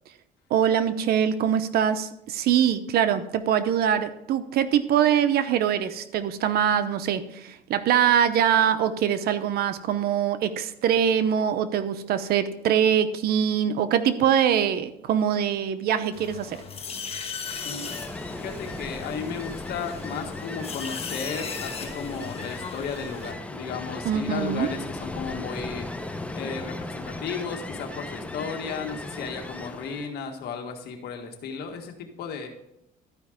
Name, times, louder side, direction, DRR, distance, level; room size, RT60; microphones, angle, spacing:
voice 1, 0.5-16.6 24.0-24.7, right 9 dB, 70° right, 11 dB, 0.8 m, -23 dB
sound 1, 16.1-23.3, left 6 dB, 35° left, 1.3 m, -38 dB
Ocean, 17.3-30.1, left 2 dB, 5° left, 0.7 m, -37 dB
voice 2, 18.4-25.9 26.3-32.5, left 5 dB, 70° left, 4 dB, 1.7 m, -34 dB
12.5 x 5.2 x 5.0 m, 0.81 s
cardioid pair, 110°, 17 cm